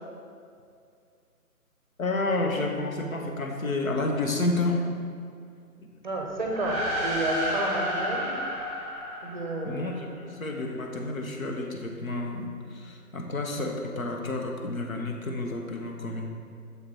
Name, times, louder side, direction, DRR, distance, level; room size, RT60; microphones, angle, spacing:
voice 1, 2.0-4.8 5.8-5.9 9.6-16.3, left 2 dB, 60° left, 2 dB, 1.1 m, -30 dB
voice 2, 6.0-8.3 9.2-10.0, right 2 dB, 30° right, 0 dB, 0.7 m, -31 dB
sound 1, 6.3-10.0, equal, 5° left, 1.4 m, -31 dB
6.8 x 4.7 x 4.4 m, 2.3 s
figure-of-eight pair, 150°, 47 cm